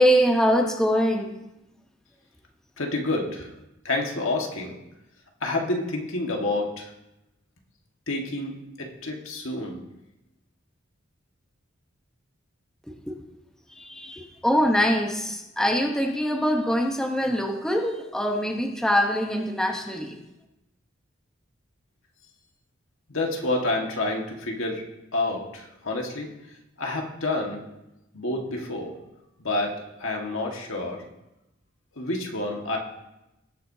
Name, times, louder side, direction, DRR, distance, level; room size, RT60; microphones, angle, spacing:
voice 1, 0.0-1.3 13.1-13.2 13.7-20.2, equal, 5° left, 1 dB, 1.0 m, -23 dB
voice 2, 2.8-3.5 3.8-4.8 5.4-6.9 8.1-9.8 23.1-24.8 25.1-26.3 26.8-27.6 28.1-29.0 29.4-31.0 31.9-32.8, left 2 dB, 75° left, 1 dB, 1.7 m, -28 dB
19.5 x 7.8 x 2.8 m, 0.92 s
head